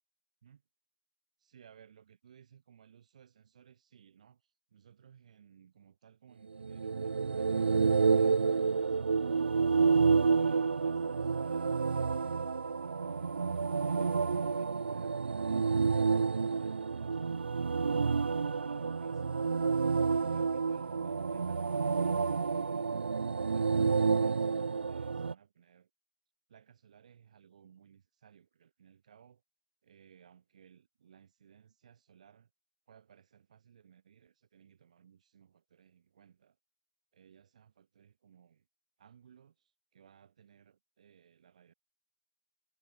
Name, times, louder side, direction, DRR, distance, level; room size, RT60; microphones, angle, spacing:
voice 1, 1.4-8.4 8.8-13.3 13.8-19.8 20.1-23.0 23.5-25.9 26.5-29.4 29.8-32.5 32.9-36.6 37.1-38.7 39.0-41.7, right 8 dB, 30° right, 2.7 m, -61 dB
sound 1, 6.5-25.3, right 5 dB, 55° right, 0.4 m, -29 dB
figure-of-eight pair, 160°, 7 cm